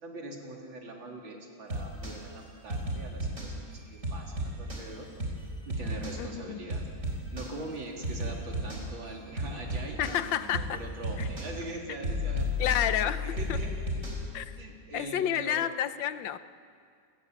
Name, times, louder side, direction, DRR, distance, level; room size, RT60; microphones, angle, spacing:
voice 1, 0.0-5.1 5.7-6.8 7.3-12.9 13.2-13.9 14.2-14.3 14.6-15.7, right 2 dB, 80° right, 0 dB, 4.0 m, -42 dB
sound 1, 1.7-2.2 2.7-3.5 4.0-4.8 5.2-5.4 5.7-6.2 6.7-7.5 8.0-8.8 9.4-10.2 10.5-10.8 11.0-11.5 12.0-14.2, left 1 dB, 40° right, 4.7 m, -33 dB
voice 2, 6.2-6.7 10.0-10.8 11.2-11.3 11.9-12.0 12.6-13.6 14.3-14.5 14.9-16.4, left 10 dB, 75° left, 13 dB, 1.5 m, -30 dB
30.0 x 14.5 x 9.1 m, 2.3 s
omnidirectional pair, 2.1 m